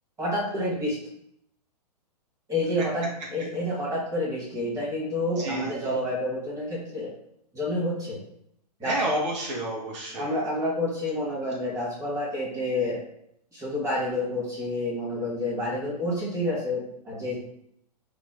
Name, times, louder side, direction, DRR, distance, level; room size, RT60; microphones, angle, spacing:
voice 1, 0.2-1.0 2.5-7.1 7.5-8.2 8.8-9.2 10.1-13.0 13.5-17.4, left 1 dB, 15° right, -6 dB, 1.4 m, -29 dB
voice 2, 5.4-5.7 8.8-10.3, right 1 dB, 45° right, -3 dB, 0.9 m, -29 dB
3.0 x 2.1 x 4.2 m, 0.72 s
figure-of-eight pair, 115°, 21 cm